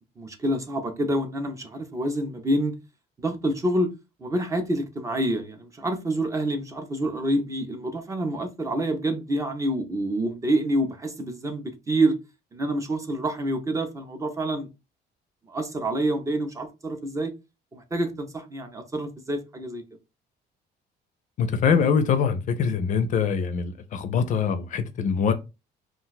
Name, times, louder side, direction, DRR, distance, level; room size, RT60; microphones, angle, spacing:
voice 1, 0.2-2.7 3.2-3.9 4.2-12.1 12.5-14.7 15.5-17.3 17.7-19.8, right 1 dB, 20° right, 0.4 m, -27 dB
voice 2, 21.4-25.3, left 6 dB, 45° left, 0.4 m, -23 dB
2.4 x 2.1 x 3.9 m
cardioid pair, 160°, 18 cm